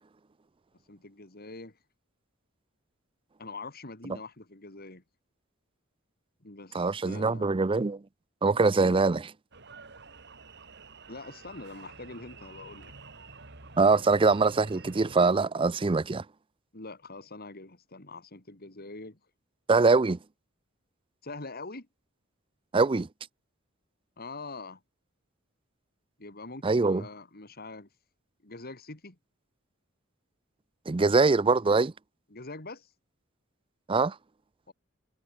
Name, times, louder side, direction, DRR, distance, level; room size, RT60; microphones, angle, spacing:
voice 1, 0.9-1.8 3.4-5.0 6.4-7.5 8.8-9.0 11.1-12.9 13.9-14.0 16.7-19.2 21.2-21.9 24.2-24.8 26.2-27.9 28.4-29.2 32.3-32.9 34.7-34.8, left 3 dB, 50° left, 3.2 m, -44 dB
voice 2, 6.7-8.0 8.4-9.2 13.8-16.2 19.7-20.2 22.7-23.1 26.6-27.0 30.9-31.9 33.9-34.2, right 4 dB, 25° right, 0.5 m, -23 dB
sound 1, 9.5-15.2, right 4 dB, 55° right, 3.2 m, -49 dB
head